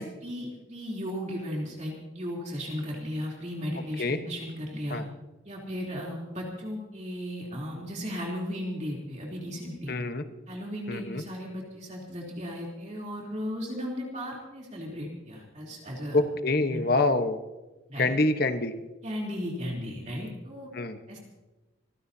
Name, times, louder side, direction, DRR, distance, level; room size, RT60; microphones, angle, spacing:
voice 1, 0.0-5.0 5.4-9.9 10.5-16.2 16.6-17.0 17.9-18.1 19.0-20.7 21.1-21.2, equal, 35° right, -2 dB, 3.3 m, -36 dB
voice 2, 9.9-10.2 10.9-11.2 16.1-17.4 18.0-18.7 20.7-21.0, left 2 dB, 45° left, 8 dB, 1.1 m, -26 dB
26.5 x 16.0 x 2.8 m, 1.1 s
head